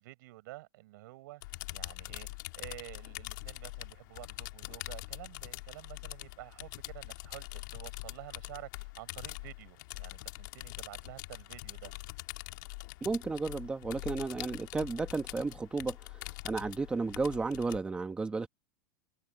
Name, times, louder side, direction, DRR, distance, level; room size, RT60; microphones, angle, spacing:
voice 1, 0.0-2.3 2.5-11.9, right 19 dB, 65° right, 6.6 m, -50 dB
sound 1, 1.4-17.8, left 22 dB, 60° left, 2.2 m, -44 dB
voice 2, 13.0-18.5, right 4 dB, 10° right, 1.1 m, -33 dB
supercardioid pair, 165°, 11 cm